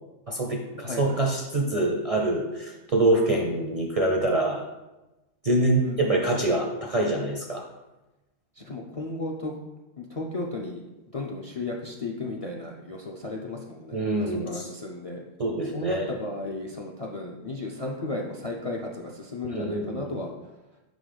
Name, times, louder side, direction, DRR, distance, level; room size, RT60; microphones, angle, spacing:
voice 1, 0.3-4.6 5.4-7.7 13.9-14.7 15.4-16.1 19.5-20.2, right 2 dB, 40° right, 0 dB, 0.5 m, -25 dB
voice 2, 0.8-1.2 5.8-6.2 8.6-9.5 10.0-10.8 11.1-15.2 15.7-20.3, left 2 dB, 45° left, 0 dB, 0.4 m, -34 dB
5.5 x 3.9 x 5.0 m, 1.0 s
omnidirectional pair, 1.3 m